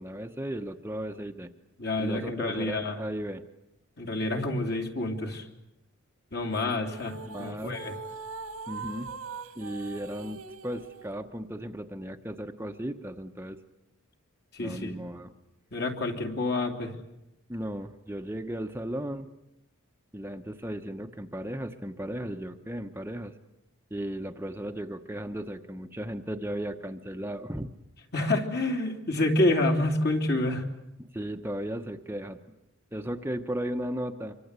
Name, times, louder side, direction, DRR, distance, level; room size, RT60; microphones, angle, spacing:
voice 1, 0.0-1.5 2.0-3.4 7.2-7.8 8.7-9.1 9.6-13.6 14.6-15.3 17.5-19.3 20.1-23.3 23.9-27.7 31.1-32.4 32.9-34.3, right 1 dB, 10° right, 5 dB, 1.0 m, -35 dB
voice 2, 1.8-3.0 4.0-5.4 6.3-8.0 14.5-14.9 15.7-16.9 28.1-30.7, left 2 dB, 50° left, 3 dB, 3.1 m, -28 dB
sound 1, 6.5-11.1, right 4 dB, 90° right, 2.1 m, -41 dB
26.0 x 24.0 x 8.2 m, 0.90 s
head